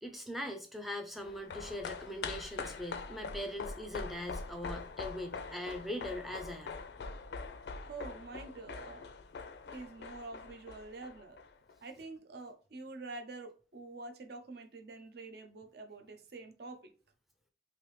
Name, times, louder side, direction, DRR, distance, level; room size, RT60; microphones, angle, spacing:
voice 1, 0.0-6.8, left 1 dB, ahead, 0.4 m, -41 dB
sound 1, 1.2-11.8 12.0-12.1, left 4 dB, 65° left, 0.4 m, -44 dB
voice 2, 7.8-9.0 9.6-11.4 11.8-16.9, right 3 dB, 55° right, 0.5 m, -47 dB
3.3 x 2.7 x 3.1 m
head